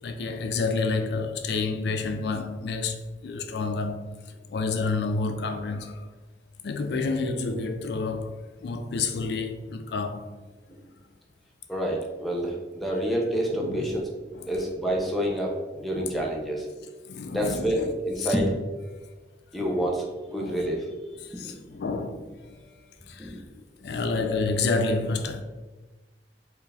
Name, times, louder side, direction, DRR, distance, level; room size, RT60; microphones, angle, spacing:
voice 1, 0.0-4.1 4.5-6.1 6.6-10.3 13.5-14.0 14.3-14.5 15.9-16.2 17.1-17.8 18.2-18.3 19.0-19.1 19.6-19.8 20.3-20.7 21.2-22.7 23.1-25.4, left 3 dB, 70° left, 0.3 m, -29 dB
voice 2, 11.7-14.0 14.5-16.7 17.3-18.5 19.5-20.8 21.3-21.7 23.2-23.4, equal, ahead, 0.5 m, -28 dB
4.5 x 2.4 x 3.3 m
head